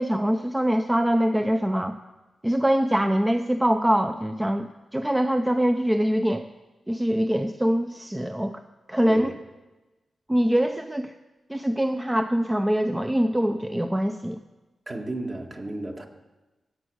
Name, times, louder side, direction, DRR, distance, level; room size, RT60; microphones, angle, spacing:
voice 1, 0.0-1.9 2.4-6.5 6.9-8.6 8.9-9.3 10.3-11.1 11.5-14.4, equal, 10° right, 7 dB, 0.6 m, -23 dB
voice 2, 14.9-16.1, right 2 dB, 35° right, 2 dB, 1.9 m, -33 dB
15.5 x 7.7 x 6.4 m, 1.1 s
cardioid pair, 55°, 0 cm